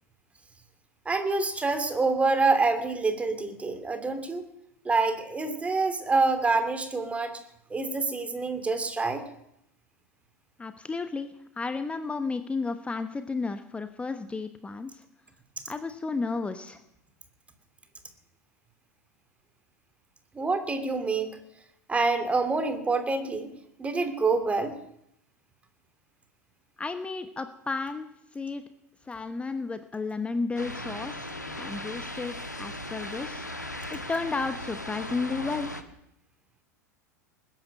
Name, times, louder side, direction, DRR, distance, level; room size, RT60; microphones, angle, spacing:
voice 1, 1.0-4.4 4.8-7.4 7.7-9.2 20.3-21.4 21.9-23.5 23.8-24.8, right 3 dB, 15° right, 8 dB, 2.7 m, -26 dB
voice 2, 10.6-15.0 15.7-16.8 26.8-28.6 29.0-33.5 33.9-35.7, left 4 dB, 10° left, 10 dB, 1.0 m, -33 dB
sound 1, 30.6-35.8, left 1 dB, 85° left, 1.3 m, -37 dB
20.5 x 10.5 x 6.5 m, 0.77 s
figure-of-eight pair, 85°, 9 cm